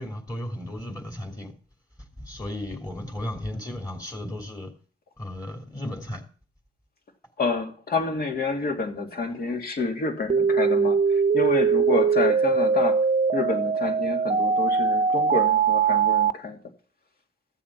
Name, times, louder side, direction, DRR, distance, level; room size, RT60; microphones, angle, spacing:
voice 1, 0.0-1.5 2.2-4.7 5.2-6.2, left 1 dB, 20° left, 3.0 m, -34 dB
voice 2, 7.4-13.1 13.3-16.6, left 3 dB, 55° left, 2.6 m, -28 dB
sound 1, 10.3-16.3, right 6 dB, 40° right, 0.8 m, -21 dB
13.5 x 7.3 x 6.0 m
cardioid pair, 75°, 18 cm